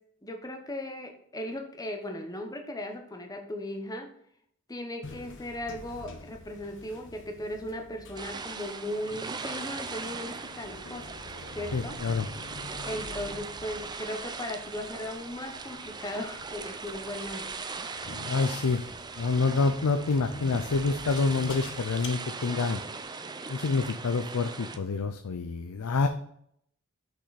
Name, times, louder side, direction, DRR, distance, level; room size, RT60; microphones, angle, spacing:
voice 1, 0.2-4.1 4.7-11.1 11.5-12.0 12.8-17.4, left 1 dB, 15° left, 4 dB, 1.0 m, -37 dB
sound 1, 5.0-22.1, left 3 dB, 60° left, 1.0 m, -47 dB
sound 2, 8.2-24.8, right 4 dB, 20° right, 0.5 m, -39 dB
voice 2, 11.7-12.3 18.3-18.8 19.2-22.8 23.5-26.1, left 4 dB, 85° left, 8 dB, 0.5 m, -27 dB
6.1 x 5.5 x 4.1 m, 0.69 s
head